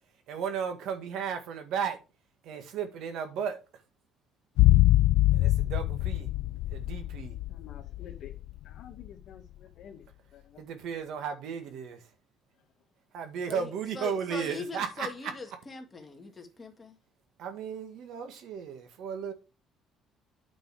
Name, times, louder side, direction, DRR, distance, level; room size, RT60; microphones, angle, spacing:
voice 1, 0.3-2.0 2.4-3.6 5.3-6.3 6.7-7.4 10.6-12.0 13.1-15.1 17.4-19.3, right 7 dB, 70° right, 1.8 m, -34 dB
sound 1, 4.6-8.8 9.1-9.2, left 16 dB, 85° left, 0.3 m, -24 dB
voice 2, 7.5-8.3 8.6-10.0 10.3-10.6, left 8 dB, 60° left, 2.0 m, -49 dB
voice 3, 13.5-17.0, left 4 dB, 20° left, 1.8 m, -41 dB
9.1 x 5.3 x 4.8 m
cardioid pair, 145°, 0 cm